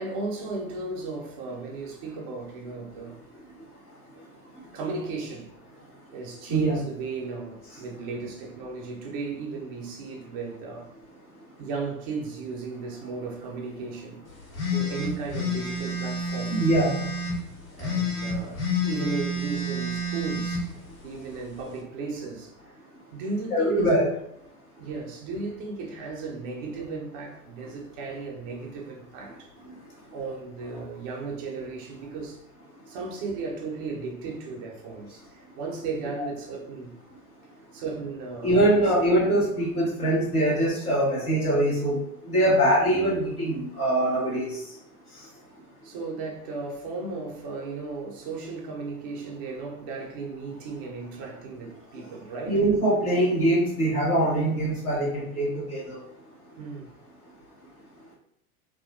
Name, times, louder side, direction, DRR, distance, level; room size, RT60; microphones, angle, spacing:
voice 1, 0.0-3.2 4.1-4.2 4.7-5.5 6.1-10.9 11.6-14.3 14.7-16.6 17.8-20.7 21.0-22.5 23.1-24.1 24.8-29.5 30.1-32.4 32.9-36.9 37.7-38.6 45.8-52.6 56.6-57.0, right 4 dB, 20° right, 0.3 m, -35 dB
sound 1, 14.5-17.4 17.8-20.6, left 2 dB, 65° left, 1.3 m, -29 dB
voice 2, 16.5-17.0 23.5-24.0 36.2-36.3 38.4-42.0 42.2-44.6 52.5-56.0, right 1 dB, 85° left, 1.3 m, -23 dB
3.5 x 2.3 x 2.5 m
figure-of-eight pair, 90°, 44 cm